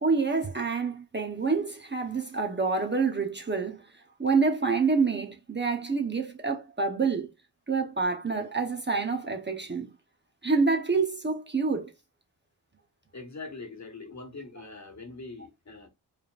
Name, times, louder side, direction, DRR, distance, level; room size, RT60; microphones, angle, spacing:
voice 1, 0.0-3.8 4.2-7.3 7.7-9.9 10.4-11.9, right 4 dB, 25° right, 0.8 m, -27 dB
voice 2, 13.1-15.9, left 3 dB, 40° left, 1.3 m, -42 dB
4.8 x 3.3 x 2.4 m
cardioid pair, 75°, 43 cm